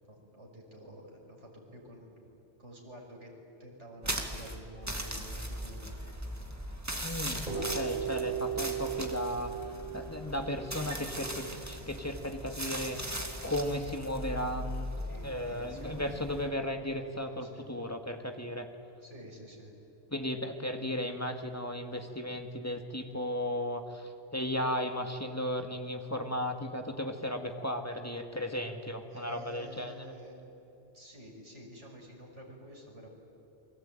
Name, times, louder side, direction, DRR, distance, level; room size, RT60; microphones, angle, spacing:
voice 1, 0.0-2.2 2.6-3.3 3.6-6.0 15.1-16.2 17.2-17.7 19.0-19.7 29.1-30.5 30.8-33.1, equal, 85° right, 0 dB, 6.0 m, -50 dB
sound 1, 4.0-16.5, equal, 15° right, 2.2 m, -39 dB
voice 2, 7.0-9.5 9.9-13.0 13.4-14.9 15.2-18.7 20.1-29.9, left 1 dB, 15° left, 4 dB, 1.9 m, -35 dB
sound 2, 7.5-15.2, right 7 dB, 40° right, 6.2 m, -39 dB
28.5 x 23.0 x 9.0 m, 2.9 s
omnidirectional pair, 1.2 m